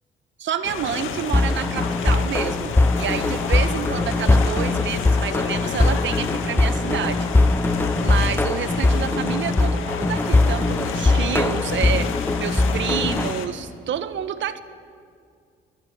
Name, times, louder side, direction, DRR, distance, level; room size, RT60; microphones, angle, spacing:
voice 1, 0.4-7.3 7.7-14.6, right 9 dB, 70° right, 11 dB, 1.5 m, -29 dB
sound 1, 0.6-13.5, left 7 dB, 85° left, 2.0 m, -31 dB
sound 2, 1.3-13.3, left 2 dB, 10° left, 0.7 m, -21 dB
23.5 x 19.5 x 8.1 m, 2.3 s
cardioid pair, 90°, 20 cm